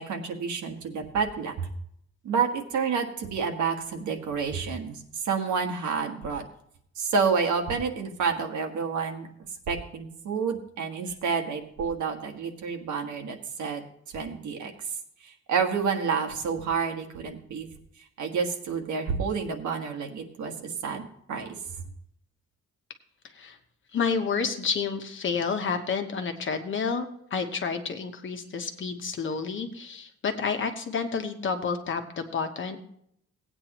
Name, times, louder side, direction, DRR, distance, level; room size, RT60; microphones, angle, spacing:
voice 1, 0.0-1.7 2.2-6.4 7.0-9.3 9.7-13.8 14.1-14.7 15.2-17.7 18.2-21.5, right 5 dB, 80° right, 4 dB, 1.6 m, -29 dB
voice 2, 23.9-27.1 27.3-32.8, left 5 dB, 40° left, 6 dB, 1.1 m, -30 dB
17.5 x 8.9 x 3.0 m, 0.70 s
wide cardioid pair, 160°, 29 cm